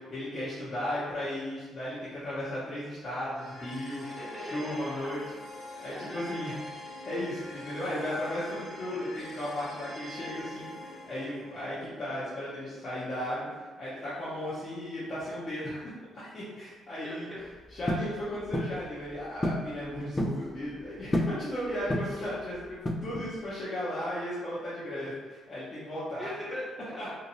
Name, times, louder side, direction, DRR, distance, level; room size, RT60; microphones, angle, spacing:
voice 1, 0.1-4.0 4.4-5.2 5.8-6.6 7.0-17.3 17.7-26.3 27.0-27.1, left 1 dB, 45° left, -11 dB, 0.9 m, -35 dB
sound 1, 3.3-14.4, left 1 dB, 65° left, 1.1 m, -45 dB
voice 2, 4.0-4.9 5.9-6.6 8.8-9.0 17.0-17.5 21.7-21.9 23.5-24.0 26.2-27.1, left 1 dB, 10° right, -7 dB, 0.9 m, -42 dB
sound 2, 17.9-18.1 18.5-18.8 19.4-19.7 20.0-20.4 21.1-21.4 21.9-22.3 22.9-23.3, left 1 dB, 20° left, 0.3 m, -29 dB
2.7 x 2.5 x 2.8 m, 1.3 s
cardioid pair, 90°, 0 cm